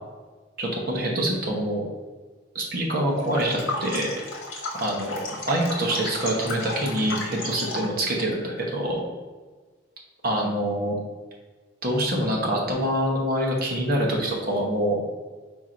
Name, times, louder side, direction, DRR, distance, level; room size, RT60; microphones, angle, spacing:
voice 1, 0.6-1.8 2.5-4.1 4.8-5.2 5.5-9.0 10.2-11.0 11.8-15.0, right 1 dB, 50° right, -2 dB, 0.9 m, -25 dB
sound 1, 3.2-8.0, left 2 dB, 80° left, 1.1 m, -34 dB
4.5 x 2.5 x 4.4 m, 1.4 s
head